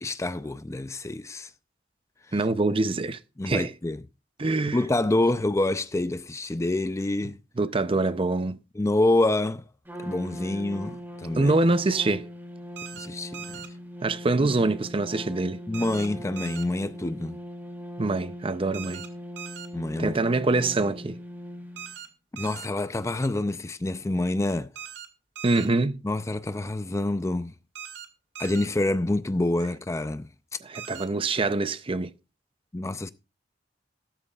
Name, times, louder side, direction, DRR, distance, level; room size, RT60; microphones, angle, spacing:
voice 1, 0.0-1.5 3.4-4.0 4.7-7.4 8.7-9.6 10.0-11.5 13.0-13.6 14.4-14.5 15.7-17.4 19.7-20.2 22.3-24.7 26.0-27.5 28.4-30.3 32.7-33.1, left 2 dB, 15° left, 0.4 m, -27 dB
voice 2, 2.3-3.2 3.5-3.7 4.4-4.8 7.6-8.6 11.4-12.3 14.0-15.6 18.0-19.0 20.0-21.2 25.4-26.0 30.6-32.1, right 2 dB, 30° right, 0.6 m, -25 dB
Trumpet, 9.8-22.0, equal, 10° right, 3.3 m, -40 dB
sound 1, 12.8-13.1 13.3-13.7 15.7-16.1 16.4-16.6 18.7-19.1 19.4-19.7 21.8-22.1 22.4-22.7 24.7-25.1 25.3-25.7 27.7-28.1 28.3-28.7 30.7-31.1, right 9 dB, 75° right, 2.1 m, -40 dB
14.0 x 13.0 x 2.4 m
head